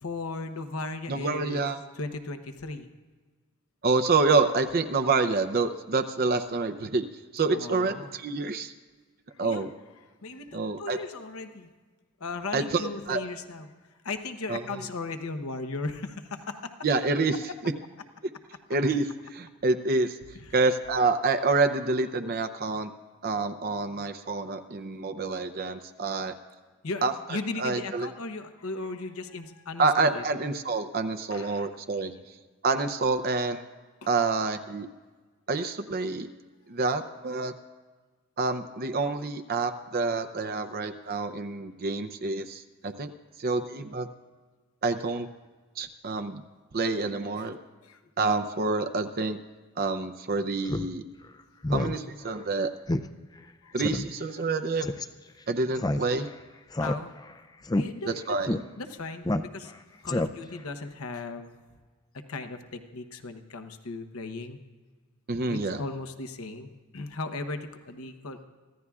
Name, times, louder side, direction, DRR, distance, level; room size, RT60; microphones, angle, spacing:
voice 1, 0.0-1.6 1.9-2.9 7.5-8.1 9.3-9.7 10.2-11.7 12.2-16.7 20.3-20.5 26.8-30.2 31.3-31.7 32.1-32.2 34.0-34.1 47.4-47.5 47.8-48.0 53.4-53.7 54.4-54.5 54.9-55.0 56.8-57.2 57.8-58.4 58.8-59.7 60.0-61.5 62.3-64.6 65.5-68.4, left 3 dB, 75° left, 8 dB, 0.9 m, -37 dB
voice 2, 1.1-1.8 3.8-7.0 7.3-8.7 9.4-9.7 10.5-11.0 12.5-13.2 14.5-14.6 16.8-17.3 17.6-17.7 18.7-19.1 19.3-20.2 20.5-22.9 23.2-26.3 27.0-28.1 29.8-32.1 32.6-33.6 34.1-34.9 35.5-36.3 36.7-37.5 38.4-43.1 43.4-44.1 44.8-45.3 45.8-46.4 46.7-47.6 48.2-49.4 49.8-51.0 51.7-52.7 53.7-54.9 55.5-56.3 58.1-58.5 65.3-65.8, right 3 dB, 45° right, 8 dB, 0.6 m, -27 dB
Speech synthesizer, 50.7-50.9 51.2-51.3 51.6-52.0 52.3-52.4 52.9-53.1 53.4-53.5 53.8-54.0 54.8-55.1 55.8-56.3 56.7-57.3 57.6-57.8 58.5-58.6 59.2-59.7 60.1-60.6, left 1 dB, 20° left, 0.4 m, -28 dB
24.5 x 15.0 x 2.4 m, 1.4 s
head